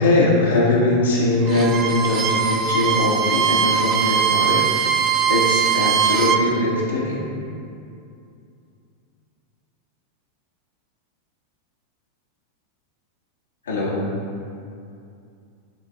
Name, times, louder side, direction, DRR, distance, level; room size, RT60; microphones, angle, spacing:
voice 1, 0.0-4.7 5.3-7.2 13.6-14.1, left 2 dB, 70° left, -6 dB, 1.7 m, -21 dB
Bowed string instrument, 1.4-6.4, right 7 dB, 30° right, 0.4 m, -20 dB
11.0 x 4.0 x 3.7 m, 2.5 s
figure-of-eight pair, 90°, 0 cm